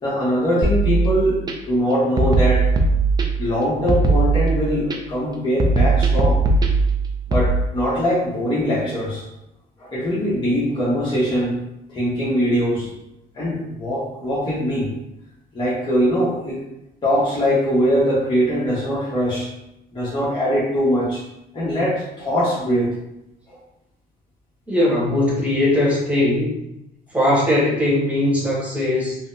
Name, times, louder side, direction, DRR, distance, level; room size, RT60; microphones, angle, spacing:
voice 1, 0.0-1.4 1.7-2.7 3.4-6.4 7.3-9.2 9.8-11.5 11.9-12.9 13.3-14.9 15.5-16.6 17.0-19.5 19.9-21.2 21.5-22.9 23.5-23.6, equal, 25° left, -9 dB, 1.0 m, -21 dB
sound 1, 0.6-1.5 2.2-3.5 3.9-5.0 5.6-7.5, right 3 dB, 25° right, 0.4 m, -19 dB
voice 2, 24.7-26.5 27.1-29.2, left 1 dB, 10° right, -6 dB, 1.3 m, -19 dB
3.7 x 2.1 x 2.7 m, 0.87 s
cardioid pair, 110°, 17 cm